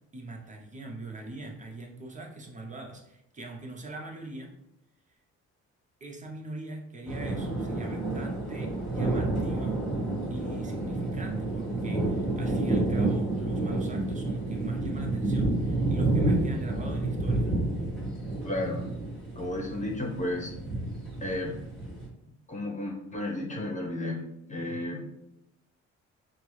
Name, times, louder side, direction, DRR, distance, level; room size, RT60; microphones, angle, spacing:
voice 1, 0.1-4.6 6.0-9.8 10.3-17.5, right 2 dB, 25° right, 1 dB, 0.7 m, -42 dB
sound 1, 7.1-22.1, right 2 dB, ahead, 1.4 m, -29 dB
voice 2, 18.4-18.8 19.4-20.5 21.2-21.6 22.5-24.2 24.5-25.0, left 1 dB, 25° left, 0 dB, 1.0 m, -32 dB
4.4 x 2.0 x 3.2 m, 0.84 s
cardioid pair, 90°, 30 cm